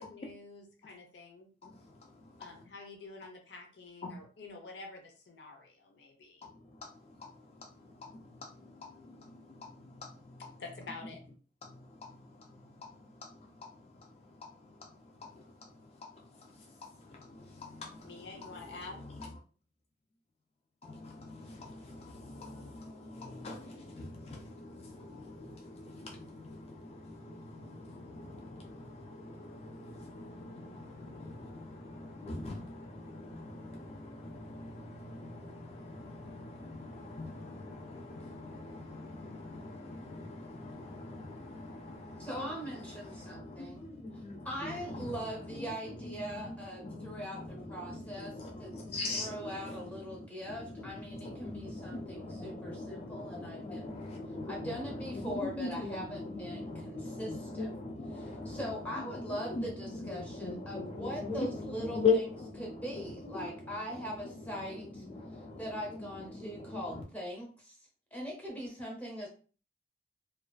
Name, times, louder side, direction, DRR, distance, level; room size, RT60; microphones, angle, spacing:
voice 1, 0.0-1.5 2.4-6.5 10.6-11.2 18.0-19.1, left 3 dB, 75° left, 0.6 m, -48 dB
voice 2, 1.6-2.5 4.0-4.2 6.4-10.6 11.6-19.3 20.8-67.0, left 3 dB, 35° left, 0.3 m, -42 dB
voice 3, 42.2-43.9 44.4-48.7 49.1-54.0 54.5-57.7 58.1-62.2 62.6-65.0 65.6-67.8 68.1-69.3, equal, 10° left, 0.7 m, -41 dB
2.3 x 2.3 x 2.3 m
head